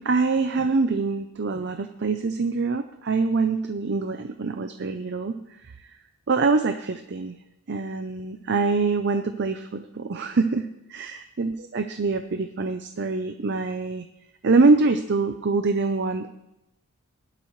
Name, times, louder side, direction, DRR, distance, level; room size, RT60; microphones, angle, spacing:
voice 1, 0.0-6.0 6.3-7.4 7.7-14.1 14.4-16.3, right 3 dB, 50° right, 8 dB, 0.5 m, -24 dB
16.5 x 11.5 x 3.2 m, 0.88 s
head